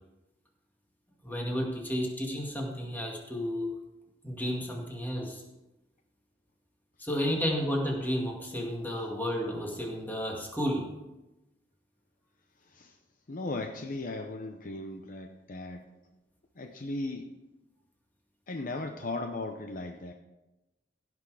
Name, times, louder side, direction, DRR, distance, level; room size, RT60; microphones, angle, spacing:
voice 1, 1.2-3.7 4.2-5.4 7.0-10.8, equal, 10° left, -1 dB, 2.1 m, -32 dB
voice 2, 13.3-15.8 16.6-17.3 18.5-20.1, left 2 dB, 45° left, 5 dB, 0.7 m, -37 dB
16.5 x 6.2 x 4.8 m, 1.0 s
head